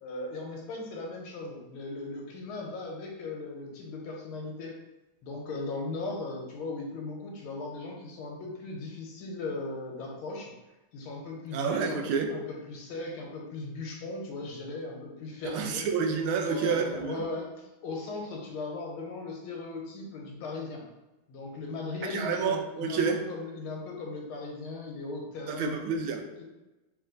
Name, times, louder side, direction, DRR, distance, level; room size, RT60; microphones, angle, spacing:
voice 1, 0.0-4.8 5.2-10.5 10.9-15.8 16.4-20.8 21.3-25.8 26.4-26.5, left 3 dB, 80° left, 0 dB, 1.7 m, -38 dB
voice 2, 11.5-12.3 15.4-17.1 22.1-23.2 25.5-26.2, right 6 dB, 80° right, 3 dB, 1.4 m, -29 dB
3.3 x 3.1 x 3.8 m, 1.1 s
omnidirectional pair, 2.3 m